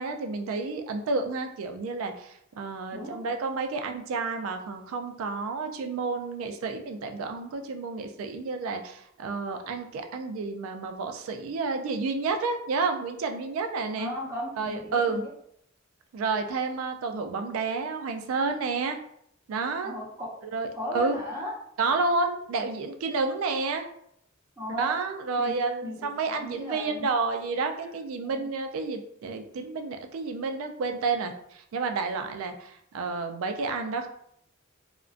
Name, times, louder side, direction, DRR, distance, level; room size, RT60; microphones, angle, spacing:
voice 1, 0.0-14.1 14.6-15.2 16.1-19.0 19.5-19.9 20.5-21.2 21.8-23.9 24.8-34.1, right 4 dB, 85° right, 6 dB, 0.3 m, -30 dB
voice 2, 2.9-3.2 14.0-15.3 19.8-20.3 20.7-21.5 24.6-25.0 25.4-27.1 27.8-28.0 28.2-28.5, equal, 15° right, -7 dB, 0.6 m, -36 dB
2.4 x 2.1 x 2.4 m, 0.71 s
head